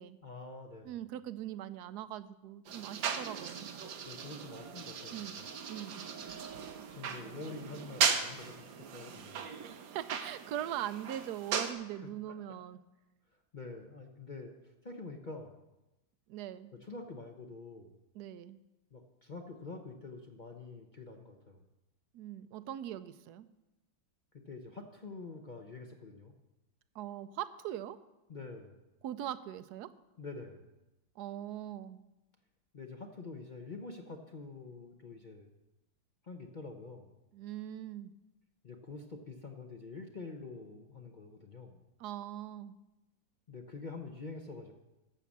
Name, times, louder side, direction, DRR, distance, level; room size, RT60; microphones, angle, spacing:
voice 1, 0.2-0.9 4.0-5.5 6.9-9.5 11.9-12.6 13.5-15.6 16.7-18.0 18.9-21.6 24.3-26.3 28.3-28.8 30.2-30.7 32.7-35.5 36.2-37.1 38.6-41.8 43.5-44.7, left 3 dB, 40° left, 3 dB, 0.7 m, -46 dB
voice 2, 0.8-3.7 5.1-6.1 9.6-12.8 16.3-16.7 18.1-18.6 22.1-23.5 26.9-28.0 29.0-29.9 31.2-32.0 37.3-38.1 42.0-42.7, right 12 dB, 70° right, 13 dB, 1.1 m, -41 dB
sound 1, 2.7-11.7, right 7 dB, 90° right, 1.7 m, -37 dB
11.5 x 7.0 x 7.3 m, 0.99 s
omnidirectional pair, 2.0 m